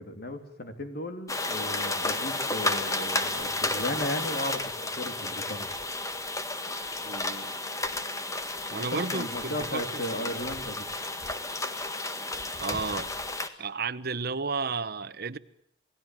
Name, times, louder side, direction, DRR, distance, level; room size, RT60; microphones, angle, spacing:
voice 1, 0.0-4.6 4.9-5.7 8.7-10.9, left 1 dB, 55° left, 8 dB, 3.2 m, -35 dB
sound 1, 1.3-13.5, left 2 dB, 15° left, 1.6 m, -32 dB
voice 2, 7.0-7.5 8.7-10.3 12.6-13.1 13.6-15.4, right 4 dB, 55° right, 12 dB, 1.1 m, -33 dB
28.0 x 18.5 x 9.2 m, 0.69 s
head